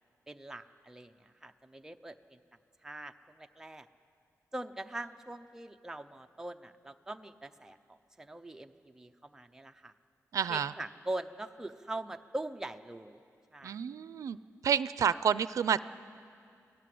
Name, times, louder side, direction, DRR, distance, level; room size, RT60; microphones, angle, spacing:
voice 1, 0.3-2.4 2.8-3.9 4.5-7.8 8.2-9.9 10.5-13.2 13.5-13.8, right 1 dB, 10° right, 6 dB, 0.7 m, -42 dB
voice 2, 10.3-10.7 13.6-14.4 14.6-15.8, right 8 dB, 75° right, 16 dB, 0.5 m, -29 dB
28.0 x 18.0 x 7.8 m, 2.4 s
wide cardioid pair, 180°, 6 cm